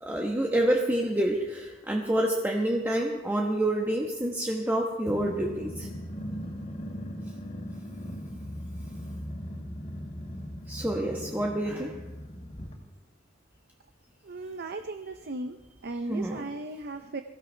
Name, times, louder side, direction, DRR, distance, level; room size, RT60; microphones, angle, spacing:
voice 1, 0.0-5.9 10.7-12.0 16.1-16.4, right 1 dB, 10° right, -1 dB, 1.1 m, -28 dB
Growling, 5.1-12.7, equal, 35° left, 2.6 m, -38 dB
voice 2, 14.2-15.6 15.8-17.2, right 2 dB, 50° right, 7 dB, 0.6 m, -36 dB
22.5 x 16.0 x 3.3 m, 1.2 s
head